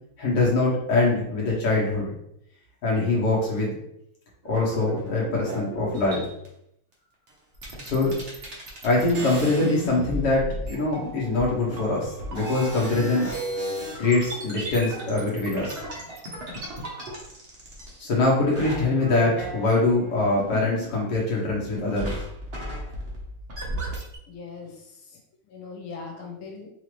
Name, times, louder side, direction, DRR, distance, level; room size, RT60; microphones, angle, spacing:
voice 1, 0.2-2.1 2.8-3.8 4.5-6.2 7.8-8.1 8.8-13.3 14.0-15.8 18.0-22.2, left 2 dB, 50° left, -4 dB, 1.7 m, -23 dB
sound 1, 4.4-6.5 7.3-7.4 7.5-18.2 18.5-21.1 21.4-24.2, equal, 45° right, 0.8 m, -35 dB
voice 2, 24.3-25.2 25.5-26.7, left 4 dB, 85° left, 1 dB, 1.8 m, -40 dB
4.9 x 2.8 x 3.1 m, 0.74 s
omnidirectional pair, 2.3 m